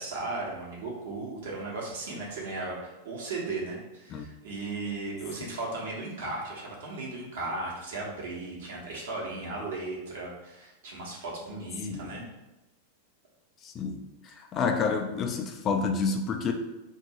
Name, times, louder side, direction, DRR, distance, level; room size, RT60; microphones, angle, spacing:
voice 1, 0.0-12.2, right 2 dB, 60° right, -3 dB, 1.1 m, -36 dB
voice 2, 13.6-16.5, left 5 dB, 30° left, 5 dB, 0.3 m, -29 dB
2.6 x 2.6 x 4.2 m, 0.98 s
figure-of-eight pair, 90°, 0 cm